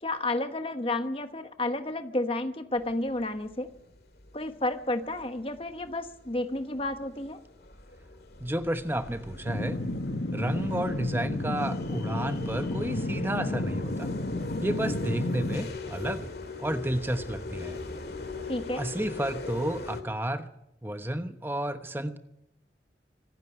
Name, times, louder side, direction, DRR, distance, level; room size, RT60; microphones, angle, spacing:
voice 1, 0.0-3.7 4.3-7.4 18.5-18.9, left 2 dB, 30° left, 9 dB, 1.0 m, -31 dB
sound 1, 2.8-20.0, left 3 dB, 60° left, 2.0 m, -41 dB
voice 2, 8.4-9.8 10.3-14.1 14.6-16.3 16.6-17.8 18.8-20.5 20.8-22.2, right 1 dB, 10° right, 9 dB, 1.0 m, -31 dB
sound 2, 9.4-15.6, left 1 dB, 85° left, 1.4 m, -32 dB
25.0 x 10.5 x 9.9 m, 0.82 s
head